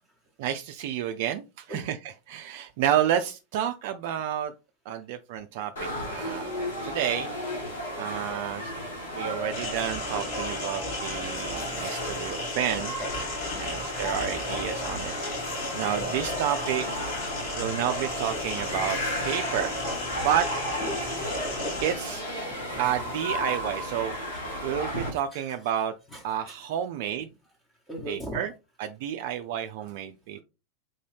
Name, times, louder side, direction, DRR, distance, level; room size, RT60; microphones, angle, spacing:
voice 1, 0.4-2.0 2.3-4.5 4.9-6.5 6.8-7.3 8.0-8.7 9.1-13.0 13.6-15.1 15.4-17.1 17.6-19.7 20.2-20.5 21.8-22.2 22.8-24.2 24.6-25.9 26.2-27.3 28.1-28.5 28.8-30.4, right 10 dB, 55° right, 7 dB, 0.3 m, -30 dB
sound 1, 5.8-25.1, equal, 75° left, 1.4 m, -34 dB
voice 2, 7.8-8.1 9.2-9.3 11.4-11.8 12.5-12.6 13.0-14.1 15.2-16.0 20.9-21.7 22.1-22.7 24.0-24.7 25.3-25.7 26.1-26.6 27.7-28.4 29.8-29.9 30.3-30.4, equal, 10° left, -1 dB, 1.0 m, -44 dB
sound 2, 9.5-21.9, left 2 dB, 55° left, 1.6 m, -35 dB
3.8 x 2.6 x 3.3 m, 0.29 s
figure-of-eight pair, 90°, 0 cm